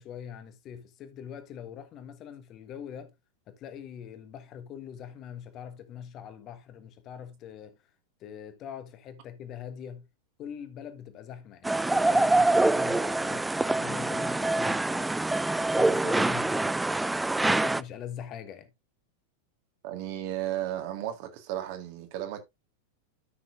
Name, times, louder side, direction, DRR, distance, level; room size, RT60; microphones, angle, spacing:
voice 1, 0.0-3.1 3.5-7.8 8.2-10.1 10.4-15.2 15.7-16.9 17.4-18.7, left 8 dB, 35° left, 1.4 m, -43 dB
sound 1, 11.6-17.8, right 2 dB, 5° right, 0.4 m, -25 dB
voice 2, 19.8-22.4, right 12 dB, 45° right, 1.9 m, -34 dB
13.0 x 6.1 x 2.5 m
figure-of-eight pair, 90°, 0 cm